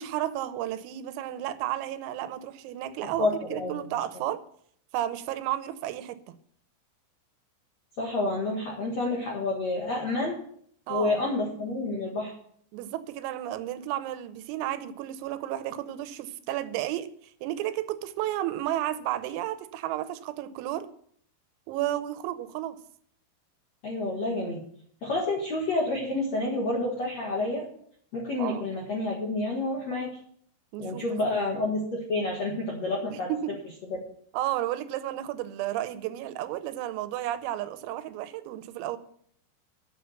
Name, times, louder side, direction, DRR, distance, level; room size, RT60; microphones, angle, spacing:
voice 1, 0.0-4.4 4.9-6.2 10.9-11.2 12.7-17.1 17.4-20.9 21.7-22.8 28.4-28.6 30.7-31.2 33.1-33.5 34.3-39.0, right 13 dB, 85° right, 12 dB, 3.4 m, -32 dB
voice 2, 3.2-3.7 8.0-10.4 10.9-12.3 23.8-24.6 25.0-27.6 28.1-30.1 30.8-33.3 33.9-34.0, left 2 dB, 65° left, -2 dB, 1.6 m, -29 dB
10.0 x 6.9 x 6.6 m, 0.63 s
omnidirectional pair, 5.9 m